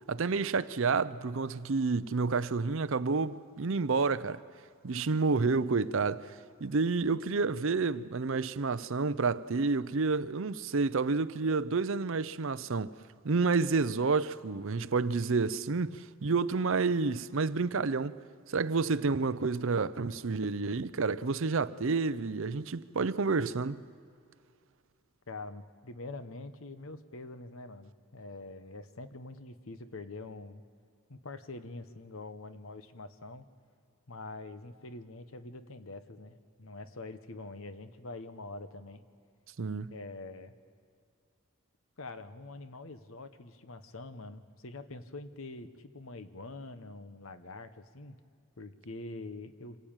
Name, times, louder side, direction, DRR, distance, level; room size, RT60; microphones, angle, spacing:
voice 1, 0.1-4.4 4.8-6.3 6.6-12.9 13.2-18.2 18.5-23.8 39.6-39.9, right 4 dB, 60° right, 0.6 m, -29 dB
voice 2, 25.3-30.6 31.1-33.4 34.1-39.0 39.9-40.5 42.0-48.2 48.6-49.8, left 2 dB, 65° left, 1.1 m, -45 dB
26.0 x 15.5 x 8.9 m
head